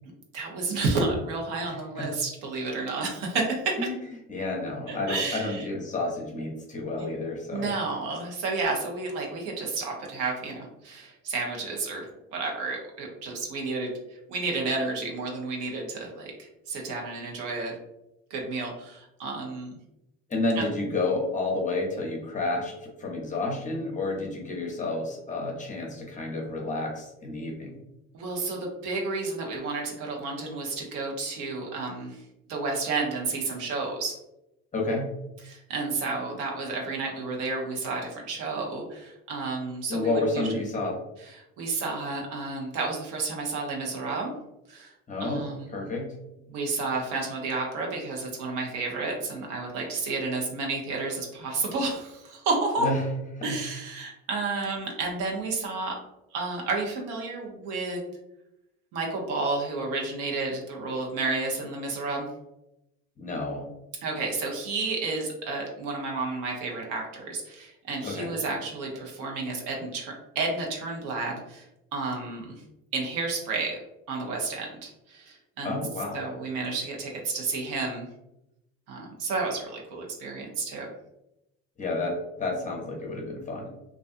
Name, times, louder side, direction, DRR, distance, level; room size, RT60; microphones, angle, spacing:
voice 1, 0.3-3.7 4.9-5.7 7.0-7.1 7.5-17.7 18.3-19.7 20.6-20.7 28.1-32.2 32.5-34.1 35.4-40.5 41.6-44.3 44.7-44.9 45.2-46.0 46.5-52.9 53.4-55.9 56.3-58.0 58.9-62.3 64.0-71.7 71.9-72.6 72.9-73.8 74.1-75.8 76.1-78.1 78.9-80.9, right 3 dB, 75° right, 0 dB, 0.8 m, -31 dB
voice 2, 1.7-2.1 3.8-3.9 4.3-7.7 20.3-27.7 34.7-35.1 39.9-41.0 45.1-46.1 52.8-53.0 53.3-53.6 63.2-63.7 68.0-68.3 75.6-76.3 81.8-83.7, left 2 dB, 25° left, 0 dB, 0.7 m, -30 dB
2.4 x 2.2 x 2.5 m, 0.89 s
supercardioid pair, 90°, 31 cm